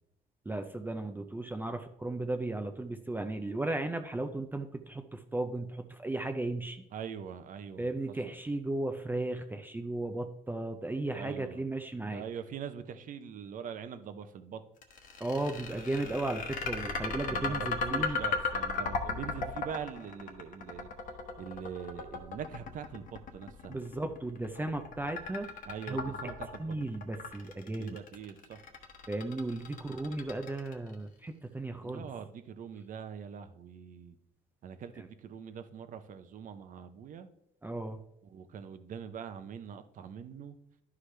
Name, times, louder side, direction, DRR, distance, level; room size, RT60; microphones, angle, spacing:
voice 1, 0.5-6.8 7.8-12.2 15.2-18.2 23.7-25.5 25.9-26.2 26.6-28.0 29.1-32.1 37.6-38.0, right 2 dB, 10° right, 6 dB, 0.5 m, -35 dB
voice 2, 6.9-7.9 8.3-8.4 11.1-11.6 12.0-14.6 17.3-20.9 21.4-23.8 25.6-26.8 27.7-28.6 31.8-34.2 34.6-37.3 38.2-40.6, right 7 dB, 50° right, 10 dB, 0.7 m, -43 dB
sound 1, 14.8-30.9, left 4 dB, 55° left, 1.2 m, -36 dB
11.5 x 4.8 x 3.3 m, 0.81 s
cardioid pair, 110°, 17 cm